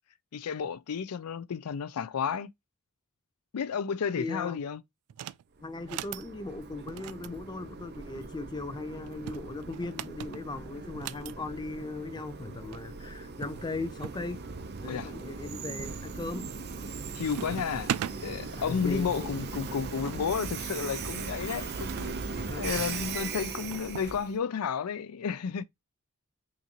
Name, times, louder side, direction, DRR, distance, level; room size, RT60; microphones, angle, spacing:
voice 1, 0.3-2.5 3.5-4.8 14.9-15.1 17.1-17.9 18.2-22.2 22.6-25.6, left 6 dB, 85° left, 0.4 m, -32 dB
voice 2, 4.2-4.6 5.6-14.4 14.8-16.5 18.6-19.3 22.4-22.9, left 3 dB, 20° left, 0.4 m, -38 dB
sound 1, 5.1-5.4 5.8-6.3 6.9-8.3 9.1-11.3 12.4-12.5 12.7-12.8 13.4-14.2 14.8-15.3 15.8-16.2 16.5-16.9 17.2-18.2 19.1-22.1 23.0-24.1, right 10 dB, 85° right, 0.3 m, -40 dB
Train, 5.6-24.4, right 4 dB, 50° right, 0.6 m, -39 dB
5.6 x 2.6 x 2.9 m
head